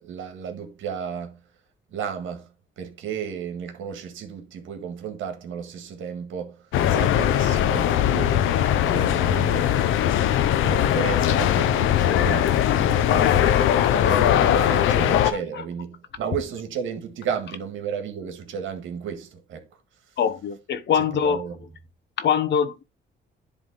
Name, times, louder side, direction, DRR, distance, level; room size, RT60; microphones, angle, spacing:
voice 1, 0.0-1.4 1.9-2.5 2.8-6.6 6.9-10.1 10.6-19.7 21.2-21.6, right 7 dB, 75° right, 1.8 m, -33 dB
sound 1, 6.7-15.3, left 11 dB, 90° left, 0.7 m, -20 dB
voice 2, 15.2-15.6 20.2-21.7 22.2-22.8, left 7 dB, 65° left, 1.0 m, -24 dB
10.5 x 3.6 x 4.1 m
cardioid pair, 90°, 20 cm